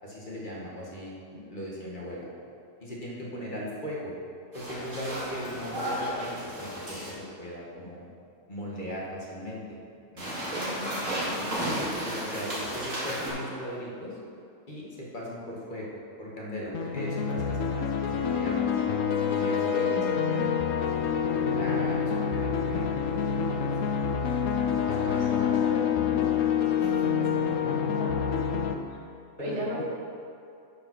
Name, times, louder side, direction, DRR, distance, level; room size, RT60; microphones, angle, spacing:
voice 1, 0.0-2.3 2.8-4.1 4.5-8.1 8.5-9.8 10.1-10.4 11.3-14.2 14.7-15.9 16.2-18.8 19.3-20.9 21.3-23.7 24.9-26.0 26.8-28.2 29.4-29.8, equal, 40° left, -5 dB, 1.8 m, -38 dB
sound 1, 4.5-7.1 10.2-13.3, equal, 80° right, 2.7 m, -33 dB
voice 2, 10.6-11.1 19.6-20.1 24.7-26.3 27.9-28.3 29.4-29.8, equal, 60° right, -4 dB, 2.0 m, -38 dB
sound 2, 16.7-28.7, left 7 dB, 85° left, 1.0 m, -27 dB
sound 3, 20.5-25.5, equal, 40° right, 1.3 m, -48 dB
9.0 x 5.7 x 6.1 m, 2.4 s
omnidirectional pair, 1.3 m